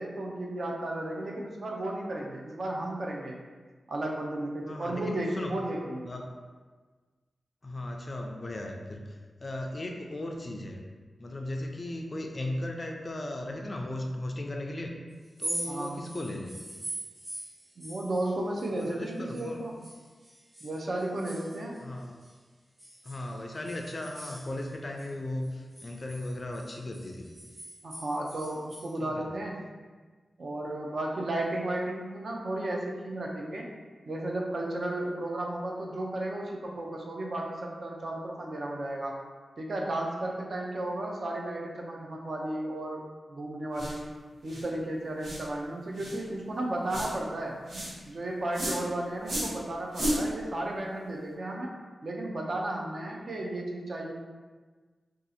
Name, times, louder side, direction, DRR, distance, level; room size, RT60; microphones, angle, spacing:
voice 1, 0.0-3.4 3.9-6.1 15.7-16.0 17.8-19.8 20.6-21.9 27.8-29.6 30.4-33.7 34.1-39.2 39.6-44.1 44.4-47.6 48.1-54.1, right 1 dB, 50° right, -1 dB, 0.5 m, -34 dB
voice 2, 4.6-5.5 6.1-6.3 7.6-10.8 11.2-15.0 15.4-16.6 18.7-19.6 21.8-22.1 23.0-27.3 29.0-29.3, left 1 dB, 30° left, 2 dB, 0.3 m, -37 dB
sound 1, 15.2-19.5 19.8-22.3 22.8-25.1 25.4-28.9, right 1 dB, 30° right, 0.8 m, -42 dB
sound 2, 43.7-44.0 44.5-44.7 45.2-45.5 46.0-46.2 46.9-47.1 47.7-47.9 48.5-48.8 49.2-49.6 49.9-50.2, right 1 dB, 90° right, 0.9 m, -32 dB
2.7 x 2.4 x 4.0 m, 1.4 s
wide cardioid pair, 165°, 0 cm